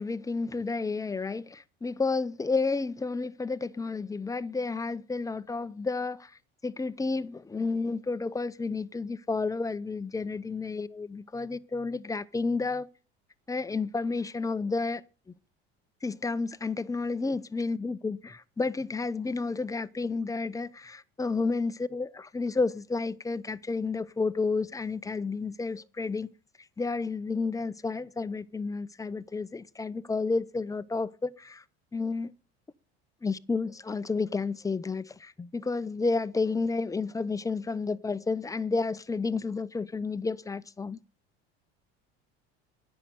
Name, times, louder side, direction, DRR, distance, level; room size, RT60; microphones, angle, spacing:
voice 1, 0.0-6.3 6.6-12.9 13.5-15.0 16.0-26.3 26.8-31.6 31.9-32.3 33.2-41.0, left 4 dB, 10° left, 0.6 m, -31 dB
10.0 x 6.6 x 9.1 m
hypercardioid pair, 75°, 33 cm